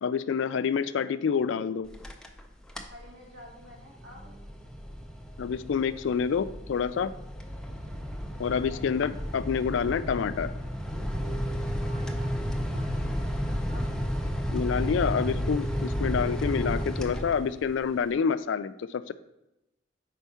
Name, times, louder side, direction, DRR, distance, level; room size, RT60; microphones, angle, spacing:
voice 1, 0.0-1.9 5.4-7.1 8.4-10.5 14.5-19.1, left 6 dB, 75° left, 13 dB, 0.3 m, -28 dB
sound 1, 1.9-2.4 2.7-3.0 3.5-17.8, equal, 5° left, 0.4 m, -32 dB
voice 2, 2.9-4.3 8.5-8.9 11.8-14.0, equal, 60° right, -2 dB, 1.4 m, -50 dB
4.6 x 4.5 x 5.5 m, 0.92 s
head